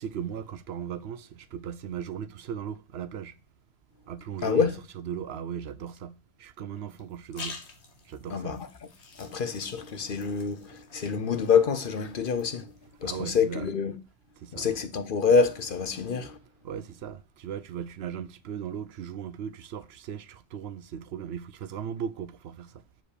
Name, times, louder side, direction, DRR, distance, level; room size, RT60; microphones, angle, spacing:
voice 1, 0.0-3.3 4.1-7.6 8.0-8.6 13.0-13.7 14.4-14.7 16.6-22.8, right 8 dB, 75° right, 0.8 m, -37 dB
voice 2, 4.4-4.7 8.3-8.7 9.2-12.7 13.0-13.9 14.5-16.4, left 5 dB, 55° left, 1.0 m, -26 dB
sound 1, 7.0-13.1, left 4 dB, 90° left, 1.6 m, -47 dB
7.6 x 4.8 x 4.9 m
omnidirectional pair, 1.1 m